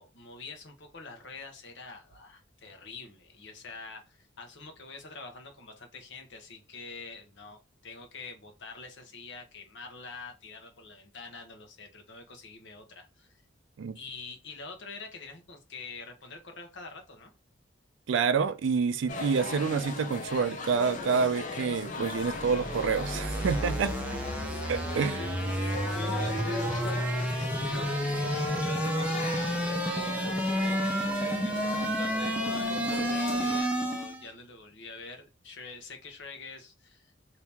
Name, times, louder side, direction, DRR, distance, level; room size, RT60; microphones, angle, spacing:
voice 1, 0.0-13.4 13.9-17.3 25.2-25.3 25.9-30.8 31.1-37.1, left 3 dB, 65° left, 1.0 m, -45 dB
voice 2, 18.1-23.9 24.7-25.3, right 5 dB, 70° right, 0.4 m, -28 dB
sound 1, 19.1-33.6, left 3 dB, 40° left, 0.6 m, -38 dB
sound 2, 22.1-34.3, equal, 5° right, 0.6 m, -30 dB
2.9 x 2.8 x 3.4 m
head